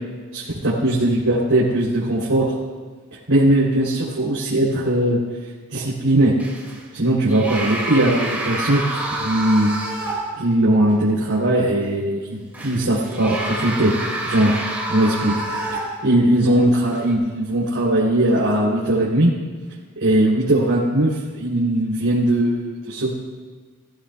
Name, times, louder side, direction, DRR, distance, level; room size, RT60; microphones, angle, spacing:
voice 1, 0.3-2.5 3.3-5.2 5.7-6.3 6.9-9.7 10.4-12.4 12.6-14.6 14.9-15.4 16.0-19.3 20.0-23.1, right 1 dB, 75° right, -8 dB, 3.1 m, -19 dB
sound 1, 6.4-6.8 7.3-10.5 10.9-11.0 12.5-16.2 16.9-17.1, right 1 dB, 10° right, 2.1 m, -28 dB
21.0 x 15.5 x 2.3 m, 1.5 s
head